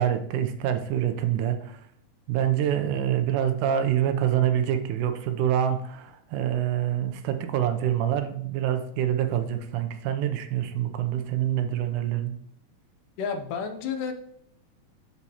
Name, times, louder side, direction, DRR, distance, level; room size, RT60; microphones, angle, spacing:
voice 1, 0.0-1.8 2.3-12.4, right 10 dB, 80° right, 8 dB, 2.1 m, -26 dB
voice 2, 13.2-14.1, left 6 dB, 80° left, 6 dB, 2.3 m, -30 dB
11.5 x 4.2 x 2.8 m, 0.71 s
omnidirectional pair, 3.6 m